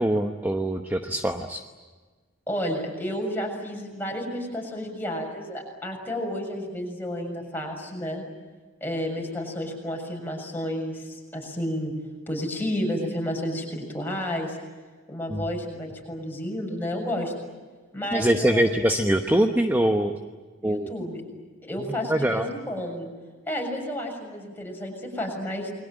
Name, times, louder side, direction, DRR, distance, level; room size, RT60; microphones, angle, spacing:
voice 1, 0.0-1.6 15.3-15.5 18.1-20.1 20.6-20.9 22.1-22.5, right 1 dB, 10° right, 4 dB, 1.1 m, -23 dB
voice 2, 2.5-8.2 8.8-11.9 12.3-14.6 15.1-17.3 17.9-18.8 20.0-20.1 20.6-21.2 21.6-23.1 23.4-25.7, equal, 10° left, 0 dB, 6.9 m, -31 dB
29.0 x 22.0 x 9.0 m, 1.4 s
head